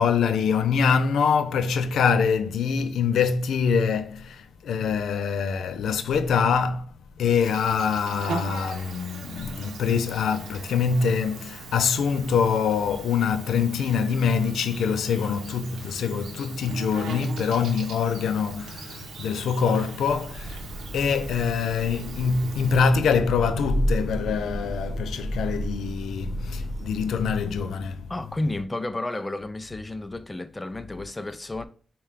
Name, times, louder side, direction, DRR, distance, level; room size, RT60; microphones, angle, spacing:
voice 1, 0.0-6.8 7.2-28.1, left 6 dB, 85° left, 0.4 m, -24 dB
Insect, 7.4-22.8, right 4 dB, 85° right, 0.7 m, -40 dB
Thunder / Rain, 20.2-28.0, right 1 dB, 45° right, 1.0 m, -32 dB
voice 2, 28.1-31.7, left 2 dB, 20° left, 0.4 m, -31 dB
5.5 x 2.3 x 3.3 m
cardioid pair, 80°, 0 cm